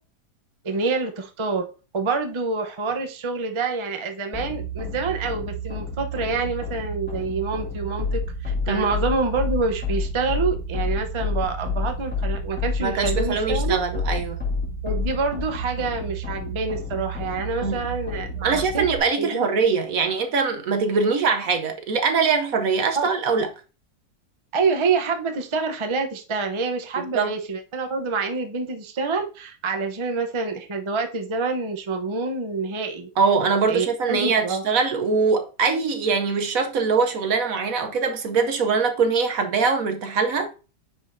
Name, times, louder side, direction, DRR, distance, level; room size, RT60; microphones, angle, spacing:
voice 1, 0.6-1.7 1.9-13.8 14.8-18.8 19.2-19.5 22.9-23.1 24.5-33.1 33.7-34.6, right 4 dB, 25° right, 0.7 m, -27 dB
sound 1, 4.3-19.0, left 2 dB, 5° left, 2.4 m, -29 dB
voice 2, 12.8-14.4 17.6-17.8 18.4-23.5 27.1-27.3 33.2-40.5, right 5 dB, 60° right, 1.1 m, -22 dB
9.5 x 4.9 x 2.7 m
omnidirectional pair, 1.8 m